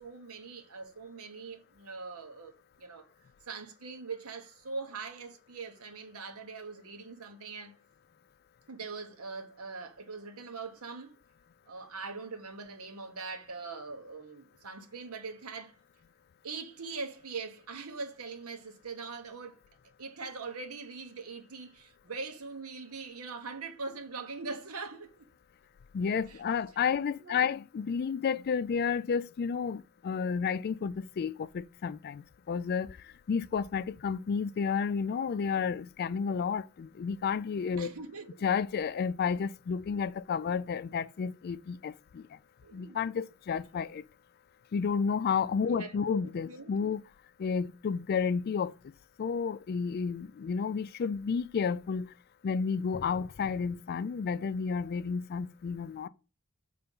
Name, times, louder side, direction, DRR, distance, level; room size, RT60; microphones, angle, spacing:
voice 1, 0.0-3.1 3.5-7.7 8.7-11.2 11.7-15.8 16.4-19.6 20.0-25.3 26.3-26.4 27.2-27.5 37.8-38.4 42.6-43.0 45.7-46.9, right 4 dB, 90° right, 1.1 m, -42 dB
voice 2, 25.9-33.0 33.3-37.9 38.4-42.2 42.7-44.0 44.7-47.0 47.4-48.7 49.2-52.1 52.4-56.1, left 6 dB, 45° left, 0.3 m, -31 dB
6.8 x 3.4 x 5.4 m
head